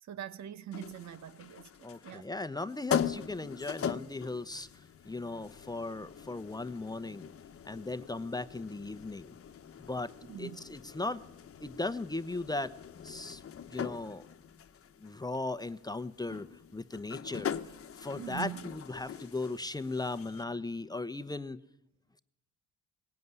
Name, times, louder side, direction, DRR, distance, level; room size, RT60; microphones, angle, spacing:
voice 1, 0.0-2.3 10.3-10.7 18.2-18.7, right 11 dB, 65° right, 1.3 m, -43 dB
sound 1, 0.7-20.4, left 8 dB, 50° left, 1.2 m, -41 dB
voice 2, 1.8-7.3 7.6-9.3 9.9-10.1 10.4-11.2 11.6-12.7 13.0-13.4 13.7-14.2 15.0-16.5 16.7-21.6, left 2 dB, 15° left, 0.9 m, -37 dB
19.0 x 18.0 x 9.7 m
cardioid pair, 90°, 30 cm